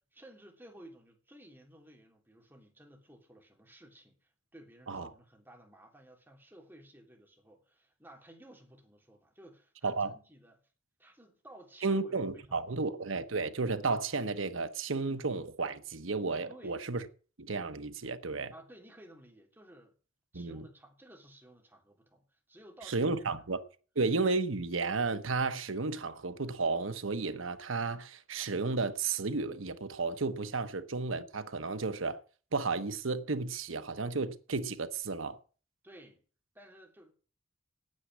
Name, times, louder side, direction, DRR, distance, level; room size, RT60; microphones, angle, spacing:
voice 1, 0.1-10.6 11.0-12.9 16.5-16.8 18.5-19.9 20.3-23.7 35.8-36.2 36.5-37.1, right 1 dB, 10° right, 3.3 m, -55 dB
voice 2, 11.8-17.0 17.4-18.5 20.3-20.7 22.9-23.6 24.0-32.2 32.5-35.4, right 3 dB, 90° right, 1.1 m, -33 dB
9.5 x 8.3 x 9.5 m
head